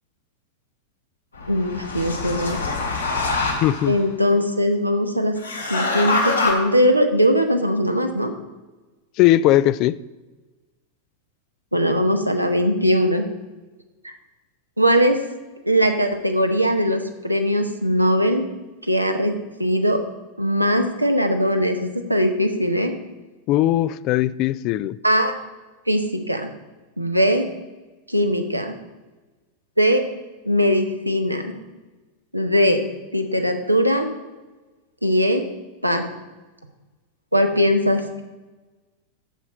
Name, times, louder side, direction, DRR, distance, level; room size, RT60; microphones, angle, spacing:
sound 1, 1.3-4.0 5.4-6.5, left 3 dB, 80° left, 2.1 m, -25 dB
voice 1, 1.5-2.6 3.9-5.4 5.7-8.3 11.7-13.3 14.0-14.1 14.8-15.2 15.6-18.4 18.9-19.3 19.6-20.0 20.4-22.9 25.0-25.3 25.9-26.5 27.0-27.4 28.1-28.7 29.8-30.0 30.4-31.5 32.3-32.8 33.1-34.1 35.0-35.4 35.8-36.1 37.3-38.2, equal, 90° right, 5 dB, 1.0 m, -20 dB
voice 2, 3.6-4.0 9.2-10.0 23.5-25.0, left 14 dB, 40° left, 18 dB, 0.3 m, -19 dB
7.7 x 6.9 x 6.4 m, 1.2 s
figure-of-eight pair, 90°, 0 cm